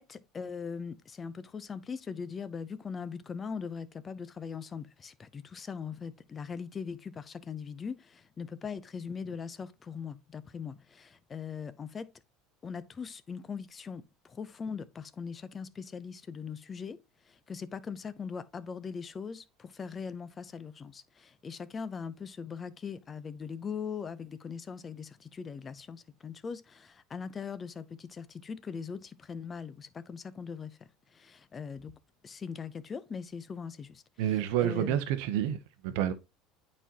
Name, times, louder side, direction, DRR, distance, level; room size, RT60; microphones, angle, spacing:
voice 1, 0.0-12.1 12.6-17.0 17.3-30.8 31.1-31.9 32.2-34.0 34.6-35.0, left 6 dB, 30° left, 0.6 m, -40 dB
voice 2, 34.2-35.6 35.8-36.1, right 11 dB, 75° right, 0.7 m, -28 dB
9.1 x 4.2 x 2.9 m
supercardioid pair, 95°, 0 cm